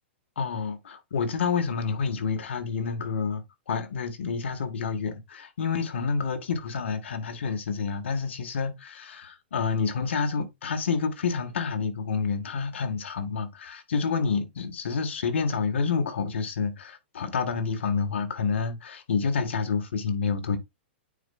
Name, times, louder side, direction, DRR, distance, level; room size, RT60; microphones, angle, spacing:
voice 1, 0.4-20.6, left 5 dB, 85° left, 1.6 m, -28 dB
9.2 x 4.4 x 2.4 m
hypercardioid pair, 160°, 6 cm